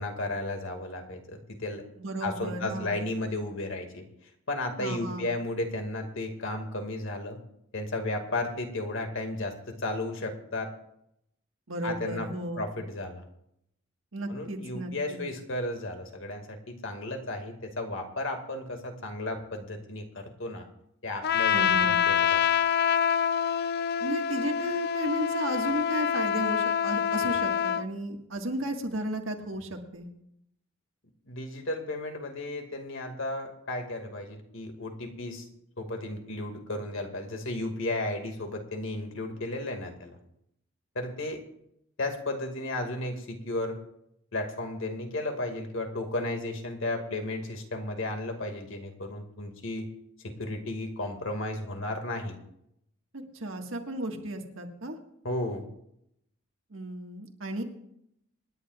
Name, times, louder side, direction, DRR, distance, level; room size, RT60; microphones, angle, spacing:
voice 1, 0.0-1.8 2.2-4.0 4.5-7.4 7.7-10.7 11.8-12.3 12.6-13.2 14.3-20.7 21.0-22.4 31.3-35.5 35.8-40.2 41.0-41.4 42.0-43.8 44.3-49.9 50.2-52.4 55.2-55.7, left 2 dB, 65° left, 4 dB, 2.1 m, -34 dB
voice 2, 2.0-2.9 4.8-5.3 11.7-12.7 14.1-15.2 21.5-22.0 24.0-30.1 53.1-55.0 56.7-57.6, right 1 dB, 65° right, 3 dB, 1.7 m, -34 dB
Trumpet, 21.2-27.9, left 8 dB, 50° left, 0.4 m, -26 dB
26.5 x 10.5 x 2.4 m, 0.76 s
head